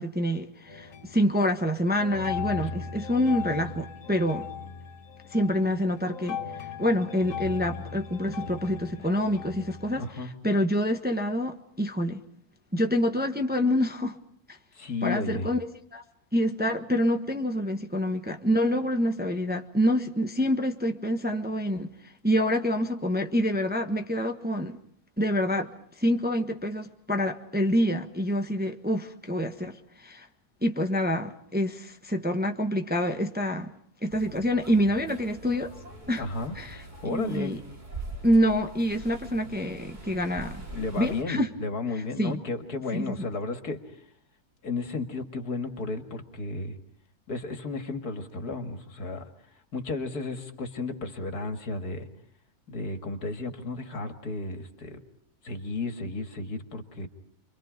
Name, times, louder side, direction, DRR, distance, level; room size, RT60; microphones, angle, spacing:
voice 1, 0.0-4.5 5.3-10.0 10.4-12.2 12.7-14.2 14.5-14.6 15.0-16.0 16.3-21.9 22.2-24.8 25.2-25.7 26.0-30.3 30.6-33.7 34.0-35.7 36.1-36.2 36.5-37.6 38.2-40.6 41.0-41.5 42.2-42.4 42.9-43.3, equal, 5° right, 1.1 m, -27 dB
sound 1, 0.6-1.4 1.7-10.1, left 7 dB, 55° left, 1.9 m, -38 dB
voice 2, 10.0-10.4 14.7-15.5 36.2-36.6 37.0-37.6 40.7-43.8 44.6-46.8 47.3-49.3 49.7-52.1 52.7-55.0 55.4-57.1, left 3 dB, 75° left, 2.5 m, -33 dB
sound 2, 34.1-41.2, right 2 dB, 30° right, 2.5 m, -43 dB
29.5 x 24.0 x 5.1 m
omnidirectional pair, 1.7 m